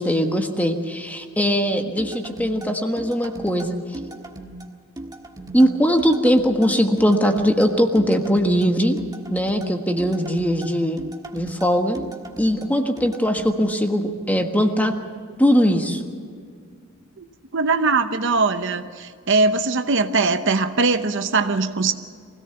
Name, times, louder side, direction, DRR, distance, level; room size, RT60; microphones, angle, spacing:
voice 1, 0.0-3.8 5.5-9.0 9.3-11.0 11.3-12.0 12.4-14.9 15.4-16.0, equal, 5° left, 4 dB, 1.4 m, -20 dB
sound 1, 2.0-13.5, right 1 dB, 15° right, 1.5 m, -37 dB
voice 2, 17.5-21.9, right 3 dB, 55° right, 9 dB, 0.9 m, -21 dB
24.0 x 17.5 x 7.0 m, 2.1 s
head